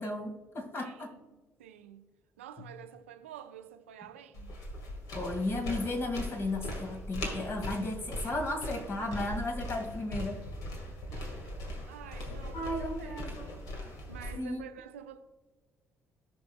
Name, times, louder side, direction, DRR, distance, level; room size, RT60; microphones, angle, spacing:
voice 1, 0.0-1.1 5.1-10.4 12.5-13.5 14.3-14.6, left 2 dB, 35° left, 2.0 m, -34 dB
voice 2, 0.8-4.6 11.1-11.6 11.9-13.6 14.1-15.2, right 9 dB, 75° right, 0.6 m, -49 dB
sound 1, 4.3-14.3, left 1 dB, 60° left, 1.8 m, -40 dB
17.5 x 6.1 x 2.3 m
figure-of-eight pair, 45°, 7 cm